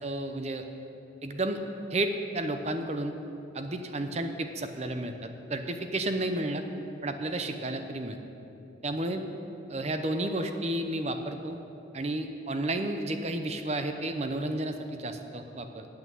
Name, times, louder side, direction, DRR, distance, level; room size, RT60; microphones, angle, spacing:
voice 1, 0.0-0.7 1.2-1.6 1.9-3.1 3.5-6.6 7.0-8.2 8.8-9.2 9.7-11.6 11.9-15.9, right 1 dB, 35° right, 7 dB, 0.7 m, -32 dB
8.7 x 8.2 x 9.1 m, 2.8 s
head